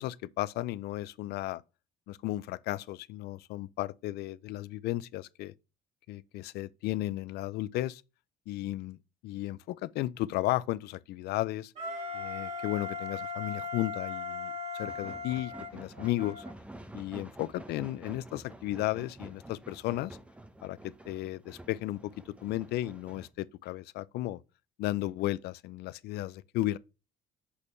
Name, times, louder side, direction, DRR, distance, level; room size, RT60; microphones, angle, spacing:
voice 1, 0.0-1.6 2.1-5.5 6.1-8.0 8.5-11.7 12.1-16.4 16.9-20.2 20.6-22.1 22.4-24.4 24.8-26.8, left 16 dB, 75° left, 0.4 m, -34 dB
Wind instrument woodwind instrument, 11.7-16.5, left 3 dB, 40° right, 2.3 m, -38 dB
sound 1, 14.8-23.3, right 1 dB, 5° right, 0.8 m, -49 dB
6.4 x 5.3 x 3.2 m
cardioid pair, 110°, 17 cm